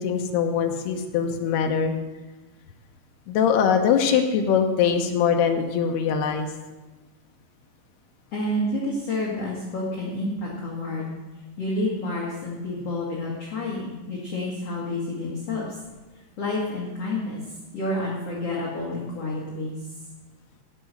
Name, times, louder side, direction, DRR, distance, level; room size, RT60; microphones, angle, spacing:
voice 1, 0.0-1.9 3.3-6.5, left 7 dB, 75° left, 4 dB, 2.6 m, -22 dB
voice 2, 8.3-11.1 11.6-15.8 16.4-19.8, left 1 dB, 50° left, -4 dB, 1.9 m, -29 dB
17.0 x 6.1 x 6.6 m, 1.2 s
omnidirectional pair, 5.4 m